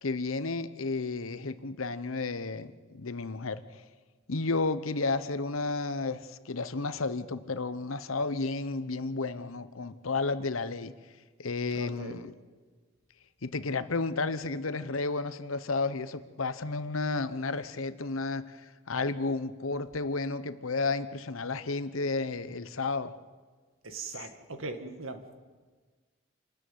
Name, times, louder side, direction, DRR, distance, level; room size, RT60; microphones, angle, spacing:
voice 1, 0.0-3.6 4.3-10.9 11.4-12.3 13.4-18.6 18.9-23.1, left 3 dB, 85° left, 13 dB, 1.0 m, -32 dB
voice 2, 11.7-12.2 23.8-25.2, right 3 dB, 80° right, 6 dB, 2.1 m, -39 dB
27.0 x 13.5 x 9.4 m, 1.4 s
head